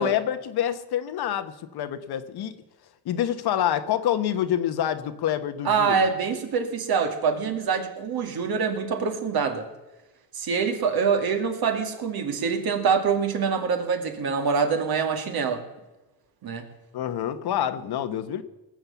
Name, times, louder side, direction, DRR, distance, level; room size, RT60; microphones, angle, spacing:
voice 1, 0.0-2.6 3.0-6.0 16.9-18.4, left 10 dB, 65° left, 10 dB, 1.2 m, -27 dB
voice 2, 5.6-9.7 10.3-15.6 16.4-16.6, right 6 dB, 60° right, 5 dB, 2.4 m, -25 dB
19.0 x 7.8 x 7.1 m, 1.1 s
cardioid pair, 120°, 41 cm